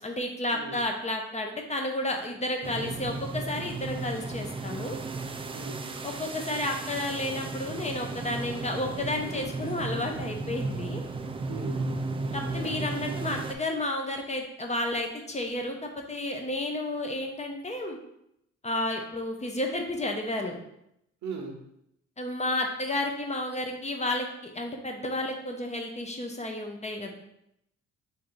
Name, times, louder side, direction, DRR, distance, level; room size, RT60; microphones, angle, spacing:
voice 1, 0.0-5.0 6.0-11.0 12.3-18.0 18.6-20.6 22.2-27.1, left 1 dB, 25° left, 3 dB, 0.7 m, -31 dB
sound 1, 2.6-13.5, right 3 dB, 20° right, 0.3 m, -35 dB
voice 2, 5.5-5.9 11.5-11.9 21.2-21.6, right 4 dB, 70° right, 4 dB, 0.9 m, -38 dB
3.6 x 2.6 x 4.6 m, 0.79 s
cardioid pair, 90°, 30 cm